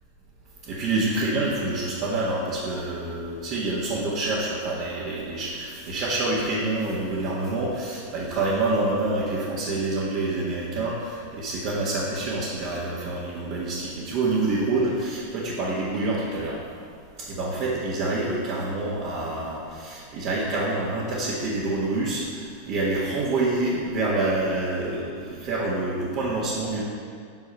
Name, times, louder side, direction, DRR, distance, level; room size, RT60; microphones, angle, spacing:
voice 1, 0.7-16.6 17.3-26.8, right 2 dB, 40° right, -7 dB, 1.7 m, -27 dB
9.7 x 6.5 x 5.7 m, 2.2 s
figure-of-eight pair, 90°, 0 cm